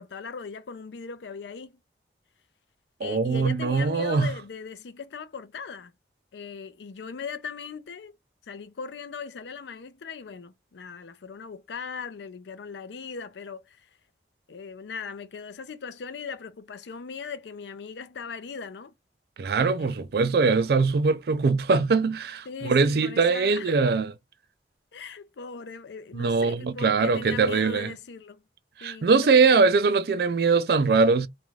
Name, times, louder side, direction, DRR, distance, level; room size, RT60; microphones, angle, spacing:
voice 1, 0.0-1.8 3.0-5.9 6.3-8.1 8.4-13.9 14.5-18.9 19.8-20.0 22.5-23.8 24.9-28.4 28.8-29.7, left 5 dB, 80° left, 0.5 m, -39 dB
voice 2, 3.0-4.3 19.4-24.1 26.2-27.9 28.8-31.3, right 4 dB, 60° right, 0.4 m, -22 dB
2.5 x 2.3 x 3.1 m
head